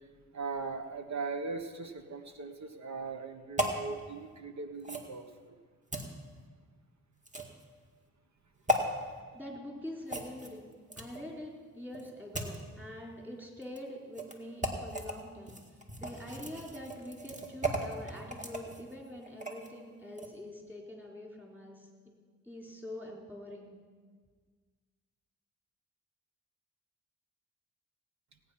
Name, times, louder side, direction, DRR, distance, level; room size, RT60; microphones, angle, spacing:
voice 1, 0.0-5.6 8.9-9.1, right 4 dB, 60° right, 7 dB, 1.3 m, -40 dB
sound 1, 3.6-3.8 4.8-5.1 5.9-6.1 7.3-7.6 8.7-8.8 10.1-11.3 11.9-12.6 13.6-13.8 14.2-14.3 14.6-15.1 15.5-19.7 20.1-20.3, equal, 25° right, 2.0 m, -35 dB
voice 2, 9.3-10.7 11.0-15.6 16.0-22.1 22.5-23.7, left 1 dB, 5° right, -1 dB, 4.0 m, -45 dB
18.0 x 9.1 x 5.7 m, 1.5 s
cardioid pair, 65°, 31 cm